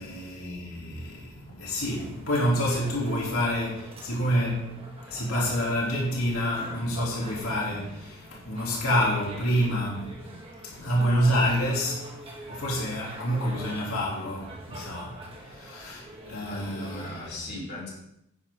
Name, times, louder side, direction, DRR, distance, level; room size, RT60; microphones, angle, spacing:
voice 1, 0.0-10.4 10.6-12.0 12.5-17.1, equal, 90° left, -3 dB, 3.0 m, -28 dB
sound 1, 1.8-17.4, right 1 dB, 25° right, 1.9 m, -46 dB
voice 2, 16.4-17.9, left 2 dB, 50° left, -5 dB, 4.7 m, -39 dB
11.0 x 9.9 x 3.7 m, 0.80 s
head